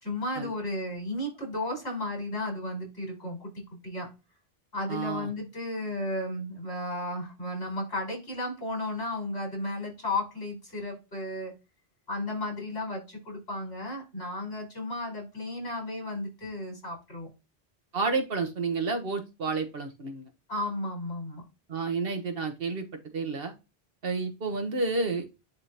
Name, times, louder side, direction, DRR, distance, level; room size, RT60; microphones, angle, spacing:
voice 1, 0.0-4.1 4.7-11.5 12.1-17.3 20.5-21.4, left 1 dB, 80° left, -1 dB, 4.8 m, -34 dB
voice 2, 4.9-5.3 17.9-20.3 21.7-22.9 23.1-23.5 24.0-25.4, right 4 dB, 60° right, 5 dB, 1.4 m, -30 dB
10.5 x 3.7 x 2.8 m, 0.27 s
omnidirectional pair, 1.1 m